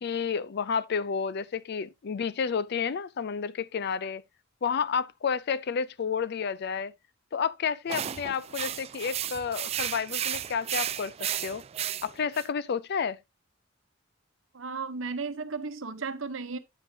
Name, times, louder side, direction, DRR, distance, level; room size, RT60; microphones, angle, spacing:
voice 1, 0.0-4.2 4.6-6.9 7.3-11.6 12.0-13.2, left 6 dB, 55° left, 0.4 m, -30 dB
sound 1, 7.9-12.5, right 10 dB, 30° right, 0.3 m, -33 dB
voice 2, 14.5-16.6, right 4 dB, 75° right, 0.9 m, -34 dB
9.0 x 7.3 x 2.8 m
head